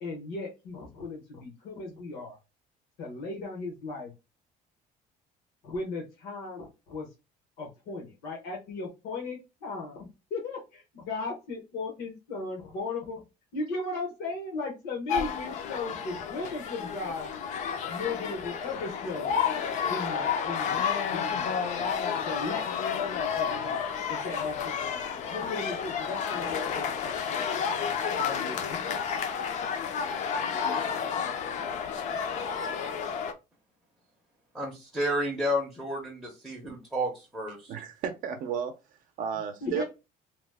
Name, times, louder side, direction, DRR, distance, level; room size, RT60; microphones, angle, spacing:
voice 1, 0.0-2.4 3.0-4.1 5.6-7.1 7.6-13.2 13.5-17.3 17.9-19.3 19.8-22.6 23.3-27.5 28.1-29.0 39.6-39.8, left 3 dB, 90° left, 1.0 m, -37 dB
sound 1, 15.1-33.3, left 7 dB, 50° left, 0.4 m, -31 dB
voice 2, 34.5-37.7, equal, ahead, 0.5 m, -31 dB
voice 3, 37.7-38.7 39.2-39.8, right 8 dB, 60° right, 0.5 m, -33 dB
2.9 x 2.0 x 3.3 m
cardioid pair, 165°, 16 cm